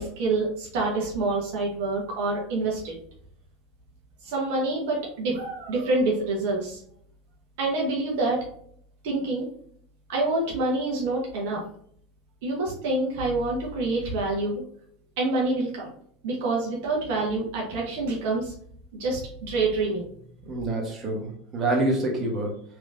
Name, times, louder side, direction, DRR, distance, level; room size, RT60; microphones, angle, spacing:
voice 1, 0.0-2.9 4.2-6.8 7.6-8.4 9.0-9.5 10.1-11.6 12.4-14.6 15.2-15.9 16.2-18.5 18.9-20.1, right 2 dB, 65° right, -3 dB, 0.9 m, -27 dB
voice 2, 20.4-22.6, right 2 dB, 35° right, 0 dB, 1.1 m, -27 dB
3.4 x 2.9 x 2.5 m, 0.65 s
hypercardioid pair, 85°, 0 cm